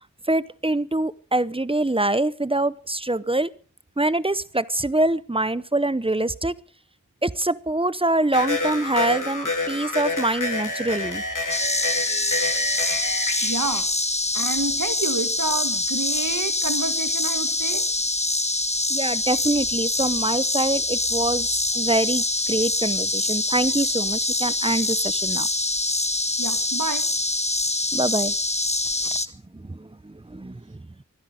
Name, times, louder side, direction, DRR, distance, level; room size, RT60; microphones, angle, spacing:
voice 1, 0.3-3.5 4.0-6.5 7.2-11.2 18.9-25.5 27.9-28.3 29.5-30.6, right 2 dB, 15° right, 18 dB, 0.7 m, -24 dB
sound 1, 8.3-13.8, left 2 dB, 70° left, 2.8 m, -28 dB
sound 2, 11.5-29.3, left 2 dB, 20° left, 1.1 m, -25 dB
voice 2, 13.4-13.9 14.3-17.9 26.4-27.4, right 3 dB, 75° right, 11 dB, 1.6 m, -29 dB
25.0 x 10.5 x 5.0 m, 0.41 s
wide cardioid pair, 50°, 32 cm